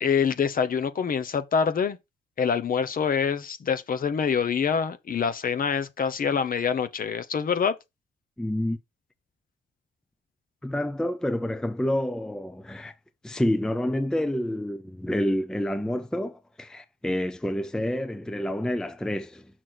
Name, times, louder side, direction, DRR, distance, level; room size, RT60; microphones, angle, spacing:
voice 1, 0.0-2.0 2.4-7.8, left 6 dB, 45° left, 0.9 m, -25 dB
voice 2, 8.4-8.8 10.6-12.9 13.2-19.5, left 1 dB, 5° left, 0.5 m, -28 dB
6.3 x 6.1 x 3.9 m
cardioid pair, 90°, 20 cm